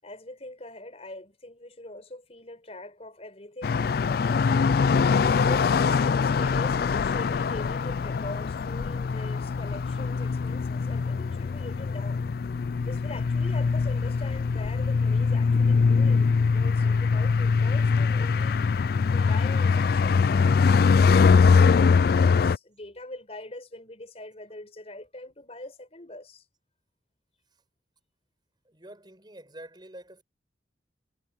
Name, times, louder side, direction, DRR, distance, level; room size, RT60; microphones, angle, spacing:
voice 1, 0.0-4.9 5.4-12.2 12.8-18.6 19.1-26.4, left 1 dB, 35° left, 4.8 m, -42 dB
sound 1, 3.6-22.6, left 5 dB, 55° left, 0.3 m, -22 dB
voice 2, 28.6-30.2, right 1 dB, 25° right, 7.7 m, -47 dB
head